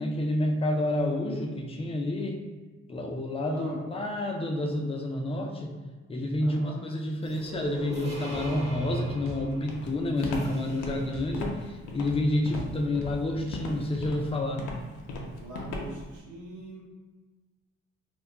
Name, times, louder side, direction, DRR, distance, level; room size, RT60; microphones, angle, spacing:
voice 1, 0.0-2.4 2.9-5.8 6.1-14.7, left 1 dB, 20° left, 2 dB, 0.4 m, -29 dB
voice 2, 3.5-3.8 6.4-6.8 15.4-16.8, right 1 dB, 75° right, -4 dB, 0.9 m, -40 dB
sound 1, 7.2-11.2, right 1 dB, 20° right, 0.9 m, -40 dB
sound 2, 8.3-8.6 9.3-9.5 10.2-10.4 11.1-14.1, right 1 dB, 45° right, 0.5 m, -43 dB
Walk footsteps, 9.7-16.1, left 2 dB, 85° left, 0.5 m, -37 dB
2.2 x 2.2 x 3.6 m, 1.3 s
cardioid pair, 90°, 30 cm